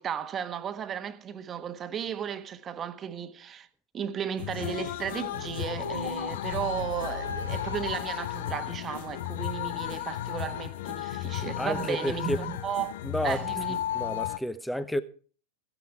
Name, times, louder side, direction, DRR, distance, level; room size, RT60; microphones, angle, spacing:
voice 1, 0.0-3.7 3.9-12.9 13.2-13.8, right 8 dB, 25° right, 1.3 m, -34 dB
sound 1, 4.4-14.4, left 13 dB, 55° left, 0.7 m, -34 dB
sound 2, 5.8-8.0, equal, 85° right, 0.9 m, -37 dB
voice 2, 11.6-12.4 13.0-13.4 13.9-15.0, equal, 5° left, 0.9 m, -30 dB
15.5 x 10.5 x 4.6 m
figure-of-eight pair, 90°, 0 cm